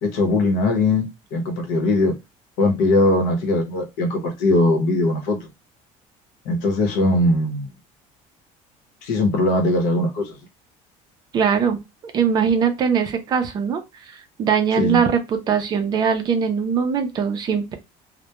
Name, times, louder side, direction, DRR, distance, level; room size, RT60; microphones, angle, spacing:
voice 1, 0.0-2.2 2.6-5.5 6.4-7.7 9.0-10.4 14.8-15.0, left 2 dB, 80° left, 0.8 m, -20 dB
voice 2, 11.3-11.8 12.1-13.8 14.1-17.7, right 7 dB, 30° right, 0.4 m, -21 dB
2.2 x 2.1 x 2.8 m
cardioid pair, 170°, 14 cm